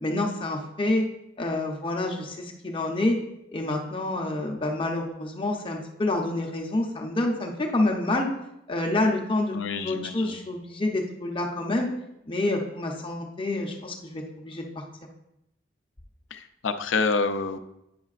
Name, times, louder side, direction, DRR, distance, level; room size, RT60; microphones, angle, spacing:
voice 1, 0.0-1.0 1.4-3.2 3.5-8.3 8.7-11.9 12.3-14.8, left 2 dB, 25° left, 1 dB, 0.7 m, -28 dB
voice 2, 9.5-10.4 16.3-17.6, left 4 dB, 70° left, 8 dB, 0.5 m, -28 dB
9.4 x 5.6 x 2.4 m, 0.83 s
head